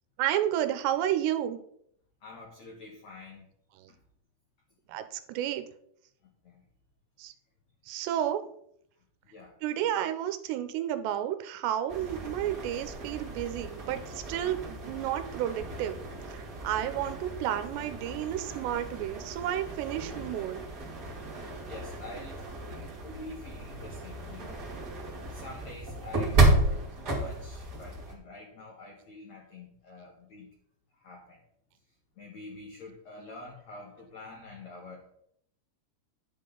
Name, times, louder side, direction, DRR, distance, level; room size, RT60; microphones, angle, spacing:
voice 1, 0.2-1.6 3.8-3.9 4.9-5.6 7.2-7.3 7.9-8.4 9.6-16.0 16.3-20.6, right 11 dB, 80° right, 10 dB, 2.9 m, -31 dB
voice 2, 2.2-3.4 6.4-6.6 9.3-9.5 9.8-9.9 21.7-22.4 23.0-24.6 25.3-30.5 31.0-31.4 32.2-35.1, left 2 dB, 55° left, -1 dB, 2.1 m, -46 dB
sound 1, 11.9-28.1, right 2 dB, 35° right, 1.6 m, -32 dB
11.0 x 6.5 x 3.9 m, 0.72 s
omnidirectional pair, 5.0 m